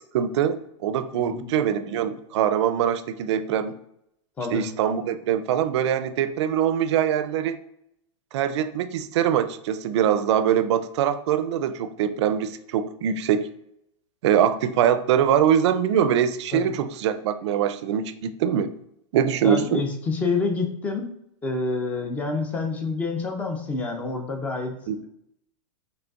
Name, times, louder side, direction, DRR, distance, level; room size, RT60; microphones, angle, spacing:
voice 1, 0.1-3.8 4.5-7.6 8.3-13.5 14.2-18.7 19.1-19.8 24.9-25.1, right 9 dB, 60° right, 11 dB, 0.4 m, -23 dB
voice 2, 1.1-1.5 4.4-4.7 16.5-16.6 19.4-21.1 21.4-24.8, left 3 dB, 10° left, 3 dB, 0.4 m, -28 dB
5.0 x 3.2 x 2.3 m, 0.78 s
supercardioid pair, 160°, 17 cm